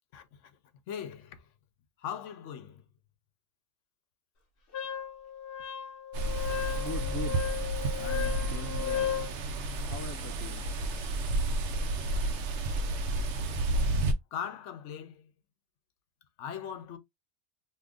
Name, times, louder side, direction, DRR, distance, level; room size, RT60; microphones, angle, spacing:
voice 1, 0.1-0.6 0.9-1.5 2.0-2.8 6.4-6.8 7.8-8.0 13.3-13.5 14.3-15.3 16.4-17.0, left 8 dB, 80° left, 0.9 m, -41 dB
Wind instrument woodwind instrument, 4.7-9.3, left 9 dB, 55° left, 1.0 m, -35 dB
sound 1, 6.1-14.1, right 2 dB, 75° right, 0.9 m, -31 dB
voice 2, 6.5-7.4 8.0-9.1 9.8-10.7, left 3 dB, 25° left, 0.4 m, -42 dB
2.7 x 2.5 x 3.5 m
omnidirectional pair, 1.2 m